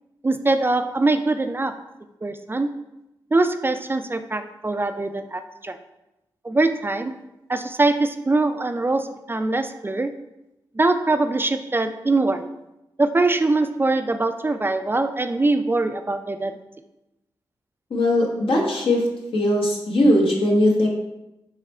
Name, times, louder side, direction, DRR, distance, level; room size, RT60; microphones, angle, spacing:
voice 1, 0.2-1.7 2.2-2.7 3.3-5.8 6.4-7.1 7.5-10.1 10.7-12.5 13.0-16.6, right 2 dB, 25° right, 8 dB, 0.4 m, -22 dB
voice 2, 17.9-19.0 19.3-20.9, left 1 dB, 70° left, -2 dB, 1.1 m, -19 dB
3.7 x 3.1 x 4.2 m, 0.93 s
supercardioid pair, 45°, 9 cm